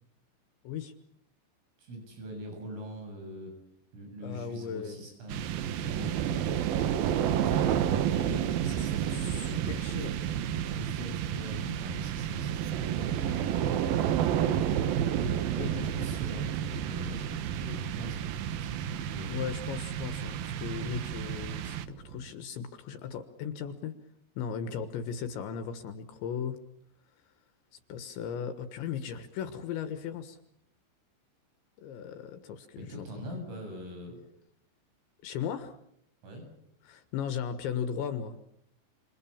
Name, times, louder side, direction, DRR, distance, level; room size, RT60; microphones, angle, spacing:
voice 1, 1.8-3.5 3.9-5.4 5.7-6.9 8.6-9.4 10.5-13.6 15.6-19.4 32.8-34.2 36.2-36.4, equal, 90° right, 3 dB, 10.5 m, -43 dB
voice 2, 4.2-5.0 8.1-10.3 15.2-15.8 19.1-21.8 22.0-23.9 24.4-26.6 27.7-30.4 31.8-33.1 35.2-35.7 36.8-38.3, left 7 dB, 70° left, 9 dB, 3.5 m, -37 dB
sound 1, 5.3-22.2, right 10 dB, 70° right, 2.4 m, -30 dB
28.0 x 28.0 x 7.2 m, 0.75 s
omnidirectional pair, 5.6 m